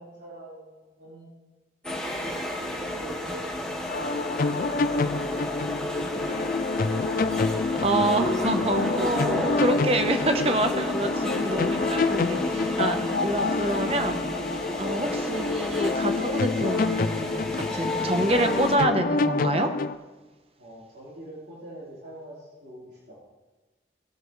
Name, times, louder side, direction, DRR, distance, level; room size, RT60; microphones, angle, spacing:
voice 1, 0.0-1.3 2.0-6.3 20.6-23.2, right 1 dB, 80° right, -8 dB, 4.1 m, -45 dB
sound 1, 1.8-18.7, left 1 dB, 5° left, 1.3 m, -32 dB
sound 2, 3.8-20.0, left 4 dB, 50° left, 0.4 m, -27 dB
voice 2, 7.8-14.2 14.8-19.7, right 1 dB, 35° right, 6 dB, 0.9 m, -27 dB
19.0 x 7.7 x 3.2 m, 1.2 s
head